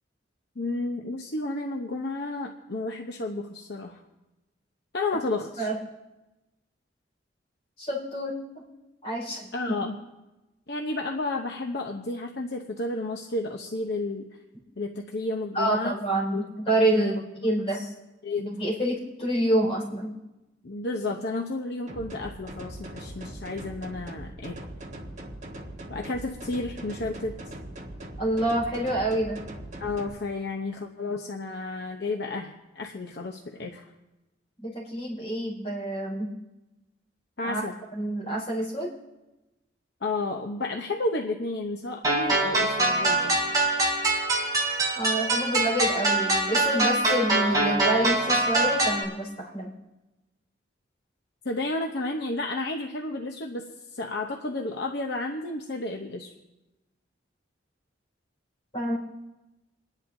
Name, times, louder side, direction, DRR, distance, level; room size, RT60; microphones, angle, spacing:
voice 1, 0.6-4.0 4.9-5.7 9.5-10.0 10.7-14.4 14.8-15.9 16.3-16.5 16.9-17.1 17.7-17.9 18.2-18.6 20.6-24.6 25.9-27.3 29.8-33.9 37.4-37.7 40.0-43.4 51.4-56.3, left 2 dB, 60° left, 2 dB, 0.8 m, -32 dB
voice 2, 7.8-8.6 9.0-9.7 15.5-17.2 17.4-17.8 18.4-20.1 28.2-29.4 34.6-36.3 37.4-37.6 37.9-38.9 44.9-49.7 58.7-59.0, right 1 dB, 30° left, -4 dB, 4.9 m, -27 dB
sound 1, 21.9-30.1, right 1 dB, 40° right, 1.5 m, -41 dB
sound 2, 42.0-49.0, right 2 dB, 20° right, 3.2 m, -24 dB
28.5 x 10.5 x 2.7 m, 1.0 s
head